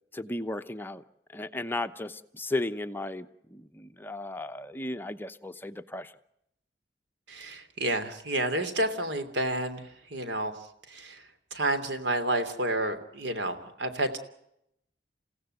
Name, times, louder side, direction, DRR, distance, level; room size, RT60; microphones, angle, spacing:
voice 1, 0.1-1.0 1.3-6.1, left 2 dB, 10° left, 9 dB, 0.9 m, -35 dB
voice 2, 7.3-10.5 10.9-11.2 11.5-14.2, right 1 dB, 90° right, 8 dB, 3.1 m, -30 dB
29.5 x 16.5 x 7.9 m, 0.78 s
head